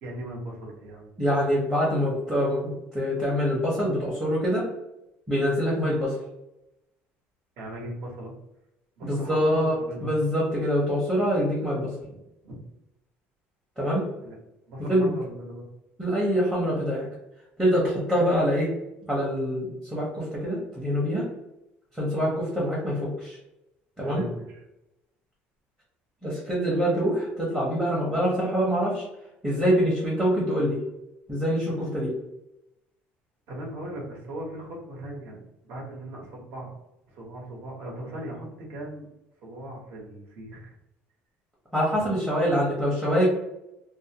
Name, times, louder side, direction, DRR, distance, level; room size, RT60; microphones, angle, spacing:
voice 1, 0.0-1.1 7.6-8.3 9.0-10.1 12.0-12.6 14.2-14.3 14.7-15.7 24.0-24.6 33.5-36.7 37.1-39.1 39.4-40.7 41.9-42.0, right 1 dB, 65° right, -2 dB, 1.0 m, -38 dB
voice 2, 1.2-4.7 5.3-6.2 9.1-9.8 10.0-11.9 13.8-14.0 14.9-15.2 16.0-17.1 17.6-18.7 19.1-21.3 21.9-23.4 24.0-24.2 26.2-29.0 29.4-30.8 31.3-32.1 41.7-43.2, equal, 10° right, -6 dB, 0.7 m, -25 dB
2.5 x 2.0 x 2.8 m, 0.90 s
cardioid pair, 145°, 4 cm